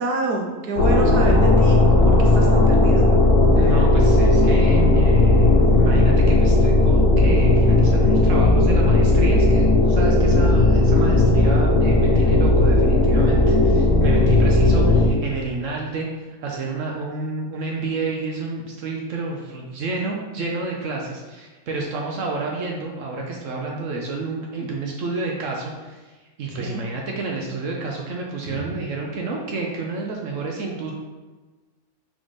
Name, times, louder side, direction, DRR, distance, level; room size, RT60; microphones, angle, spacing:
voice 1, 0.0-3.1 24.6-24.7 26.6-26.8 28.5-28.6, right 2 dB, 85° right, 0 dB, 1.3 m, -27 dB
sound 1, 0.8-15.1, left 2 dB, 85° left, 1.2 m, -16 dB
voice 2, 3.5-30.9, right 3 dB, 65° right, -1 dB, 0.9 m, -30 dB
4.0 x 3.7 x 3.1 m, 1.3 s
omnidirectional pair, 1.6 m